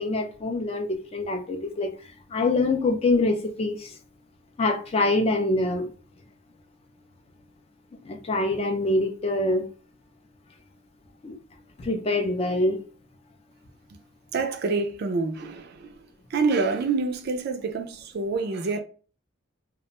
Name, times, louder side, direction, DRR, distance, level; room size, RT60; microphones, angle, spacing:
voice 1, 0.0-1.9 2.3-3.9 4.6-5.9 8.0-9.7 11.2-11.4 11.8-12.8, left 2 dB, 30° left, 0.4 m, -25 dB
voice 2, 14.3-16.0 16.3-18.8, right 4 dB, 55° right, 0.4 m, -27 dB
2.4 x 2.1 x 2.9 m
head